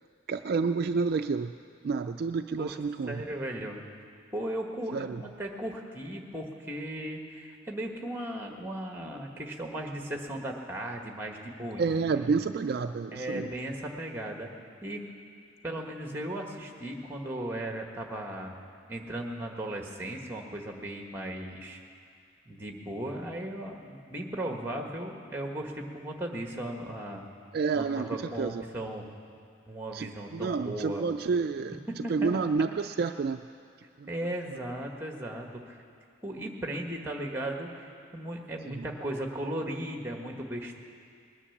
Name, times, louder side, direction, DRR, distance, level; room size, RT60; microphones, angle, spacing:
voice 1, 0.3-1.5 1.8-3.2 4.9-5.2 11.8-13.5 27.5-28.6 29.9-31.8 32.1-33.4 34.0-34.1 38.7-38.9, right 4 dB, 50° right, 8 dB, 0.3 m, -29 dB
voice 2, 2.6-3.8 4.3-12.4 13.1-14.5 14.8-15.0 15.6-18.6 18.9-21.8 22.4-27.2 27.7-29.1 29.7-31.0 31.9-32.4 34.1-35.8 36.2-40.8, right 1 dB, 10° right, 2 dB, 1.4 m, -36 dB
20.0 x 10.0 x 7.1 m, 2.3 s
head